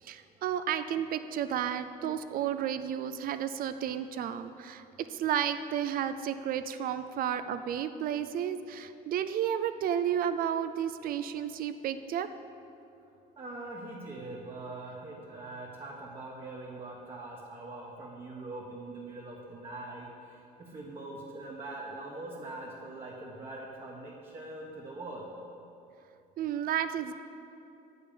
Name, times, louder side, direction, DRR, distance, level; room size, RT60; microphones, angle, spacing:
voice 1, 0.0-12.3 26.4-27.1, right 9 dB, 60° right, 10 dB, 0.4 m, -32 dB
voice 2, 13.4-25.3, right 2 dB, 30° right, -4 dB, 1.2 m, -42 dB
8.4 x 5.5 x 7.0 m, 2.8 s
cardioid pair, 110°, 17 cm